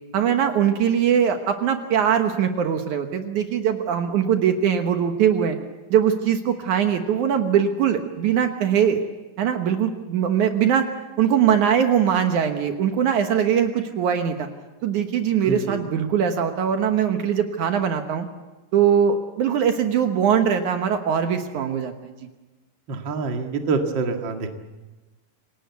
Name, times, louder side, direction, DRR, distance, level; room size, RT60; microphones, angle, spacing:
voice 1, 0.1-5.6 5.9-9.0 9.4-10.9 11.2-14.5 14.8-18.3 18.7-21.9, right 8 dB, 70° right, 6 dB, 2.5 m, -21 dB
voice 2, 15.4-15.9 22.9-24.5, right 4 dB, 40° right, 4 dB, 2.2 m, -26 dB
27.5 x 18.5 x 8.2 m, 1.1 s
omnidirectional pair, 3.8 m